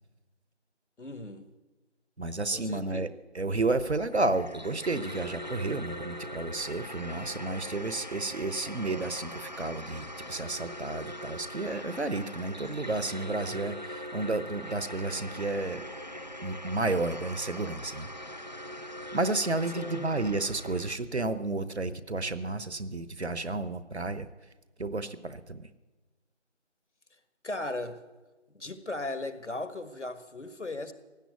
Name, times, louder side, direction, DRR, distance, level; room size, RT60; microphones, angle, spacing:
voice 1, 1.0-1.5 2.5-3.0 19.7-20.0 27.4-28.0 28.5-30.9, left 2 dB, 75° left, 9 dB, 1.6 m, -37 dB
voice 2, 2.2-3.1 3.3-15.8 16.4-18.1 19.1-24.3 24.8-25.7, right 2 dB, 65° right, 14 dB, 1.1 m, -31 dB
sound 1, 4.0-21.0, equal, 40° right, 0.6 m, -41 dB
16.0 x 8.8 x 9.4 m, 1.2 s
figure-of-eight pair, 170°, 36 cm